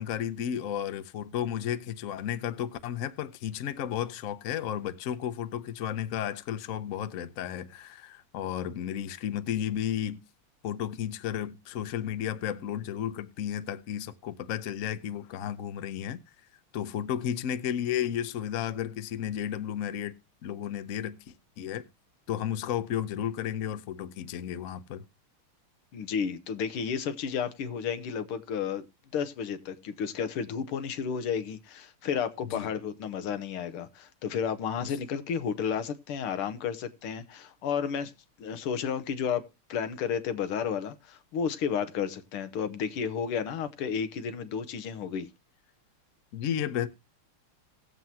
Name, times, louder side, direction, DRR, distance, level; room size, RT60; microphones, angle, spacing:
voice 1, 0.0-10.2 10.6-16.2 16.7-20.1 20.4-21.9 22.3-25.0 32.4-32.7 34.8-34.9 46.3-46.9, left 10 dB, 65° left, 0.8 m, -33 dB
voice 2, 25.9-28.8 29.1-38.1 38.4-39.4 39.7-45.3, left 7 dB, 90° left, 1.9 m, -32 dB
19.0 x 7.6 x 2.8 m
omnidirectional pair, 2.4 m